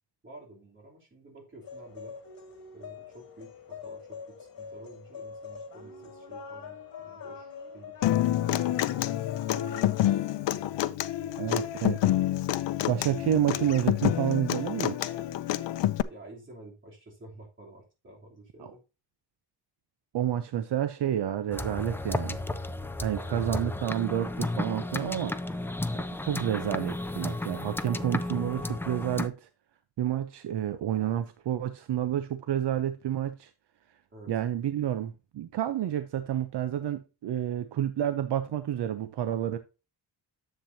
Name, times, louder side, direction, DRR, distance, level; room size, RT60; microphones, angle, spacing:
voice 1, 0.2-2.2 2.7-10.1 11.2-11.6 16.1-18.8 34.1-34.3, right 2 dB, 30° right, 3.2 m, -51 dB
sound 1, 1.6-10.0, left 6 dB, 55° left, 2.4 m, -44 dB
Human voice / Acoustic guitar, 8.0-16.0, left 13 dB, 85° left, 0.6 m, -28 dB
voice 2, 11.4-12.0 12.9-15.1 18.6-18.7 20.1-22.4 23.0-25.3 26.2-29.3 30.0-33.5 34.3-39.6, right 10 dB, 70° right, 0.8 m, -29 dB
sound 2, 21.5-29.3, left 2 dB, 5° left, 0.4 m, -33 dB
10.5 x 7.6 x 2.8 m
wide cardioid pair, 170°, 42 cm